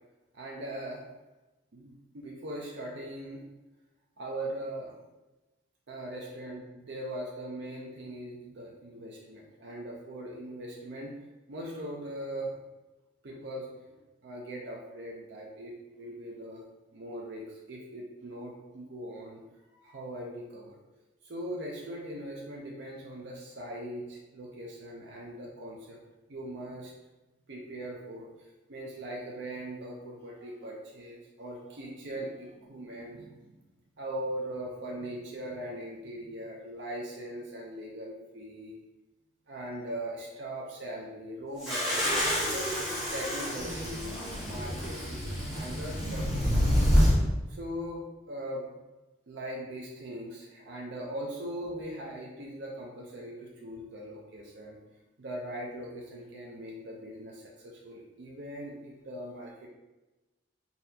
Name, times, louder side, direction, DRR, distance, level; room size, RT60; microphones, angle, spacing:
voice 1, 0.3-1.0 1.7-3.4 4.2-4.9 5.9-11.1 11.5-12.6 13.2-16.6 16.9-19.4 19.8-20.8 21.2-26.0 26.3-26.9 27.5-33.6 34.0-38.7 39.5-42.7 43.0-46.5 47.5-48.7 49.3-54.8 55.2-59.7, right 1 dB, 65° right, -2 dB, 0.5 m, -40 dB
sound 1, 41.6-47.1, equal, ahead, 1.1 m, -27 dB
4.0 x 2.8 x 2.7 m, 1.1 s
head